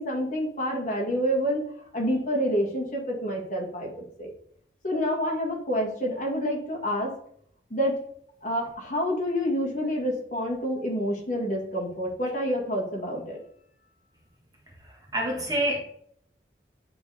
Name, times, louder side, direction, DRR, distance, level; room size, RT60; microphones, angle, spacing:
voice 1, 0.0-1.6 1.9-4.3 4.8-7.1 7.7-8.0 8.4-13.4, equal, 45° left, -2 dB, 1.7 m, -28 dB
voice 2, 14.8-15.8, right 1 dB, 20° right, -1 dB, 1.4 m, -28 dB
9.3 x 3.9 x 3.4 m, 0.65 s
head